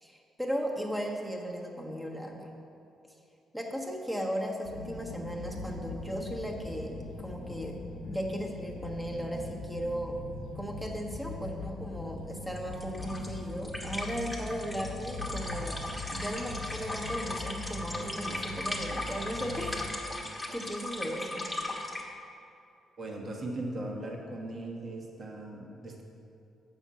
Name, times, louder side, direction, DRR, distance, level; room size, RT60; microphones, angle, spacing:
voice 1, 0.0-2.5 3.5-7.8 8.0-10.2 10.5-15.8 16.1-20.0 20.5-21.4, equal, 5° right, 0 dB, 1.3 m, -36 dB
sound 1, 4.6-19.9, left 3 dB, 85° left, 0.9 m, -41 dB
sound 2, 12.6-22.0, left 1 dB, 10° left, 1.3 m, -38 dB
voice 2, 23.0-26.0, right 1 dB, 40° right, -1 dB, 1.4 m, -38 dB
6.9 x 5.8 x 7.4 m, 2.7 s
cardioid pair, 90°, 0 cm